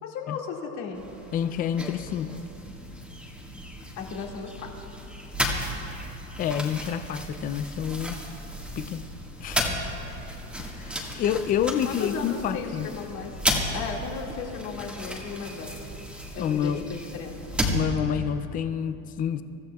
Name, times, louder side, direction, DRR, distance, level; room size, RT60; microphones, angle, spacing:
voice 1, 0.0-1.0 4.0-4.7 11.9-13.4 13.7-15.7 16.4-17.4, left 5 dB, 50° left, 0 dB, 2.1 m, -35 dB
sound 1, 0.9-17.8, equal, 5° right, 1.7 m, -34 dB
voice 2, 1.3-2.4 6.4-8.2 8.8-9.0 9.4-9.9 10.6-12.9 16.3-16.8 17.7-19.4, left 9 dB, 25° left, 11 dB, 0.3 m, -28 dB
24.0 x 13.5 x 2.3 m, 3.0 s
supercardioid pair, 130°, 38 cm